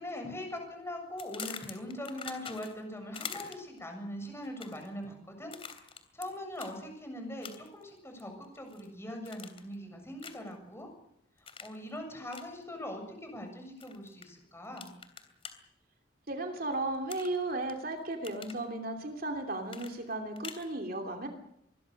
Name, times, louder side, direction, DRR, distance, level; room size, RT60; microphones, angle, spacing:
voice 1, 0.0-5.5 6.1-10.9 11.4-14.9, left 1 dB, 15° left, 4 dB, 7.3 m, -41 dB
sound 1, 1.2-2.8 3.1-3.8 4.4-4.9 5.5-6.3 6.6-6.7 7.4-7.8 8.2-8.9 9.2-9.7 10.2-10.5 11.5-11.8 12.3-12.5 13.8-14.3 14.8-15.5 17.1-17.7 18.1-18.6 19.7-20.7, left 6 dB, 30° left, 3.1 m, -44 dB
voice 2, 16.3-21.3, right 2 dB, 50° right, 4 dB, 2.9 m, -35 dB
26.0 x 21.5 x 6.5 m, 0.78 s
head